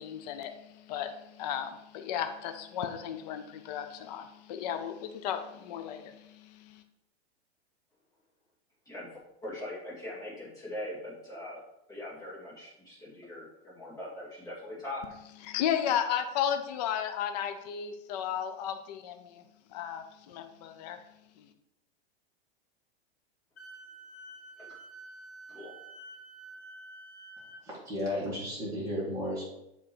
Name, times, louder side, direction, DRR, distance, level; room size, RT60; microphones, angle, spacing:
voice 1, 0.0-6.8 15.5-19.4 19.7-21.0 21.4-21.5, left 9 dB, 40° left, 7 dB, 0.5 m, -34 dB
voice 2, 8.9-11.6 11.9-15.0 24.6-24.8 25.5-25.8, left 1 dB, 10° left, -6 dB, 2.2 m, -41 dB
Wind instrument woodwind instrument, 23.6-27.6, right 2 dB, 75° left, 1.7 m, -49 dB
voice 3, 27.6-29.5, left 1 dB, 10° right, -8 dB, 2.5 m, -33 dB
7.5 x 3.6 x 4.5 m, 0.83 s
supercardioid pair, 160°, 32 cm